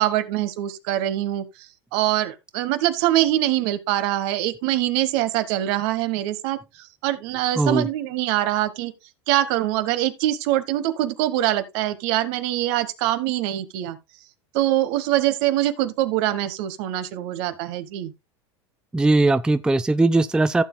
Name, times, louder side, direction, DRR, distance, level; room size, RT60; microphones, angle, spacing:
voice 1, 0.0-1.5 1.9-8.9 9.3-14.0 14.5-18.1, right 14 dB, 60° right, 1.3 m, -23 dB
voice 2, 18.9-20.6, right 2 dB, 5° right, 0.4 m, -19 dB
15.0 x 7.1 x 2.3 m
hypercardioid pair, 95°, 15 cm